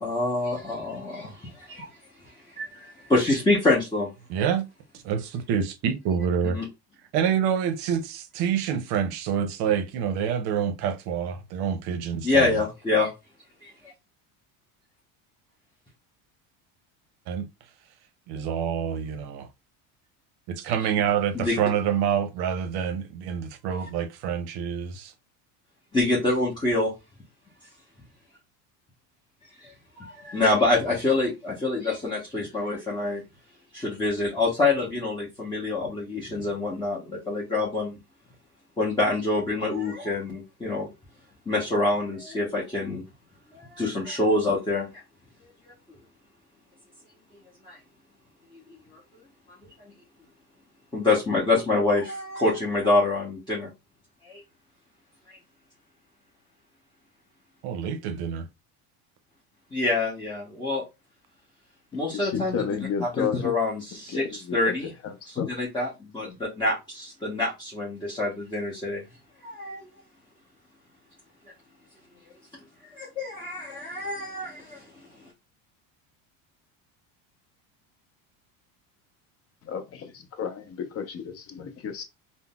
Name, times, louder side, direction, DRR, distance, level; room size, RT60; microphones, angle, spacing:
voice 1, 0.0-1.9 2.6-4.1 6.5-6.6 12.2-13.1 13.6-13.7 20.6-20.7 21.3-21.6 23.7-23.8 25.9-26.9 29.6-29.7 30.0-33.2 33.7-38.0 38.8-40.9 41.5-43.0 43.5-44.9 47.7-47.8 50.9-53.7 54.3-54.4 59.7-60.8 61.9-62.6 63.0-64.9 65.3-69.0 69.4-69.8 72.9-74.8, left 2 dB, 10° left, 0.9 m, -26 dB
voice 2, 4.3-4.7 5.0-6.6 7.1-12.6 17.3-17.5 18.3-19.5 20.5-25.1 57.6-58.5, right 8 dB, 60° right, 0.7 m, -27 dB
voice 3, 62.1-63.5 64.1-64.7 65.0-65.5 79.6-82.1, left 7 dB, 35° left, 0.6 m, -32 dB
3.7 x 2.1 x 2.3 m
supercardioid pair, 110°, 43 cm